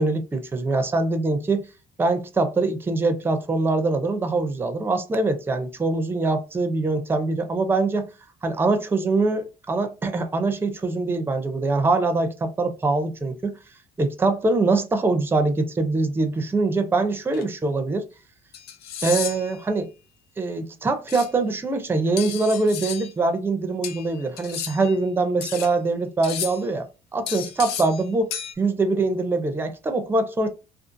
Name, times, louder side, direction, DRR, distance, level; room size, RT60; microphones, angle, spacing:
voice 1, 0.0-1.6 2.0-8.1 8.4-13.5 14.0-18.1 19.0-19.9 20.4-26.9 27.1-30.5, right 3 dB, 15° right, 0.4 m, -23 dB
sound 1, 17.3-17.4 18.5-19.6 21.1-21.3 22.2-23.1 23.8-25.0 25.4-25.7 26.2-26.7 27.3-28.0 28.3-28.5, left 9 dB, 75° left, 0.5 m, -33 dB
2.5 x 2.4 x 2.5 m
cardioid pair, 110°, 17 cm